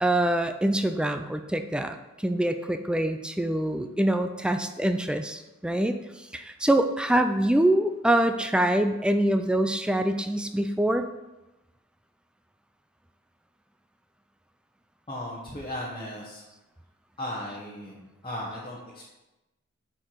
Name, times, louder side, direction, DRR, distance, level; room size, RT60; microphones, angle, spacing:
voice 1, 0.0-11.0, right 1 dB, 5° right, 7 dB, 0.3 m, -25 dB
voice 2, 15.1-16.4 17.2-19.0, left 1 dB, 25° left, -5 dB, 1.1 m, -36 dB
8.6 x 4.6 x 4.6 m, 1.0 s
head